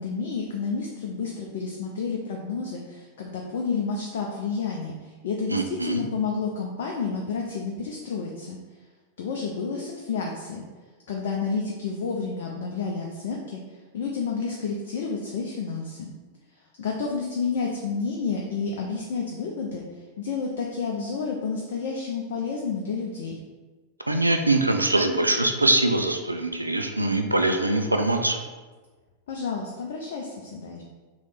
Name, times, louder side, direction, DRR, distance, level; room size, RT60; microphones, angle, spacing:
voice 1, 0.0-8.6 9.2-10.6 11.1-16.1 16.8-19.8 20.2-23.4 29.3-30.8, left 5 dB, 55° left, 0 dB, 0.5 m, -30 dB
voice 2, 5.5-6.0 24.1-28.4, right 2 dB, 85° right, 5 dB, 0.4 m, -23 dB
3.2 x 3.1 x 4.0 m, 1.3 s
figure-of-eight pair, 90°, 0 cm